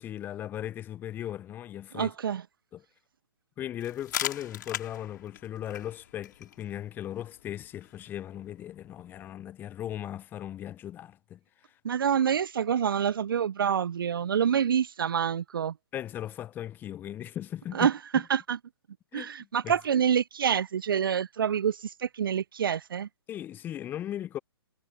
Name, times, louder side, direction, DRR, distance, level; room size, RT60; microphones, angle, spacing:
voice 1, 0.0-2.1 2.7-2.8 3.6-11.7 15.9-17.9 19.1-19.3 19.6-19.7 23.3-24.4, left 11 dB, 15° left, 0.7 m, -38 dB
voice 2, 1.9-2.4 11.8-15.7 17.7-18.6 19.1-23.1, right 8 dB, 55° right, 0.7 m, -27 dB
sound 1, 3.8-9.3, left 10 dB, 45° left, 4.2 m, -40 dB
figure-of-eight pair, 125°, 14 cm